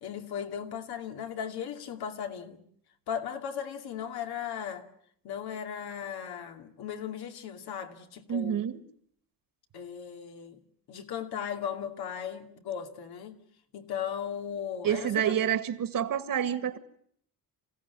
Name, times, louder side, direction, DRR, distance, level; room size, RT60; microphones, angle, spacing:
voice 1, 0.0-2.6 3.1-4.9 5.2-8.6 9.7-10.6 10.9-13.4 13.7-15.3, left 8 dB, 85° left, 2.5 m, -37 dB
voice 2, 8.3-8.8 14.8-16.8, right 9 dB, 60° right, 1.9 m, -28 dB
27.5 x 16.5 x 9.7 m
cardioid pair, 135°, 37 cm